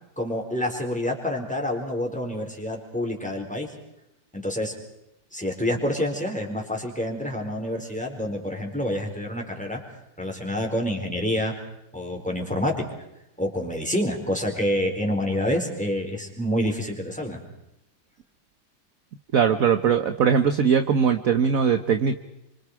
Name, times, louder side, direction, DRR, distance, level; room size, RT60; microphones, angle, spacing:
voice 1, 0.2-3.7 4.3-4.7 5.3-9.8 10.2-11.5 11.9-12.8 13.4-17.4, left 1 dB, 5° left, 1 dB, 4.2 m, -27 dB
voice 2, 19.3-22.2, right 7 dB, 55° right, 9 dB, 1.3 m, -20 dB
29.5 x 25.0 x 4.8 m, 0.85 s
omnidirectional pair, 2.1 m